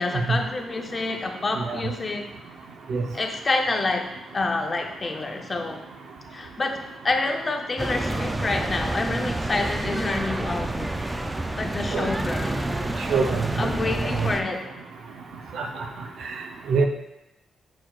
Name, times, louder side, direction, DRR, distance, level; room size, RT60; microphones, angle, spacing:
voice 1, 0.0-2.3 3.1-5.8 6.3-11.0 11.5-12.7 13.6-14.7, left 3 dB, 25° left, 3 dB, 0.6 m, -28 dB
sound 1, 7.8-14.4, right 2 dB, 15° right, 0.3 m, -28 dB
voice 2, 13.1-13.7 14.0-14.3 15.5-15.8 16.2-16.3 16.7-16.9, right 4 dB, 70° right, 3 dB, 0.7 m, -24 dB
6.7 x 5.9 x 2.4 m, 0.90 s
wide cardioid pair, 150°, 0 cm